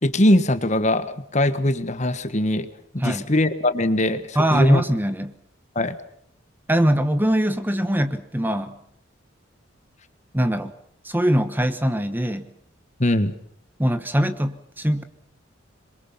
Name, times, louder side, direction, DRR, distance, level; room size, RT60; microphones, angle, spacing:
voice 1, 0.0-2.7 2.9-4.8 5.7-5.9 13.0-13.3, left 1 dB, 35° left, 11 dB, 1.4 m, -21 dB
voice 2, 4.3-5.3 6.7-8.7 10.3-10.7 11.0-12.4 13.8-15.0, equal, 10° right, 10 dB, 1.2 m, -22 dB
27.0 x 23.0 x 5.8 m, 0.68 s
head